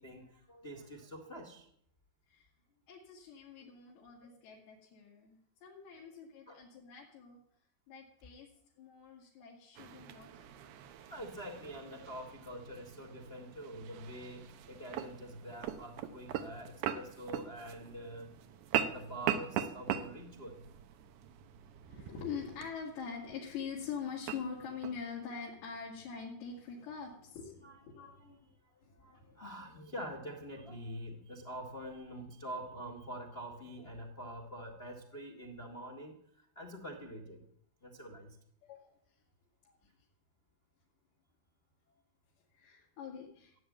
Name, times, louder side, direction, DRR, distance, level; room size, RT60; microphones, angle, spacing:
voice 1, 0.0-1.7 6.0-6.1 6.5-6.6 11.1-18.3 18.8-20.6 27.6-28.5 29.0-36.2 36.5-37.4 37.8-38.4, equal, 30° left, 1 dB, 1.0 m, -46 dB
voice 2, 2.9-7.4 7.9-8.5 8.8-10.6 14.7-14.8 21.9-28.3 28.8-29.4 31.8-31.9 38.6-39.2 39.6-39.9 42.5-43.6, left 6 dB, 75° left, -3 dB, 4.2 m, -45 dB
sound 1, 9.8-25.0, right 10 dB, 75° right, 1.8 m, -41 dB
15.5 x 8.8 x 8.6 m, 0.68 s
omnidirectional pair, 4.7 m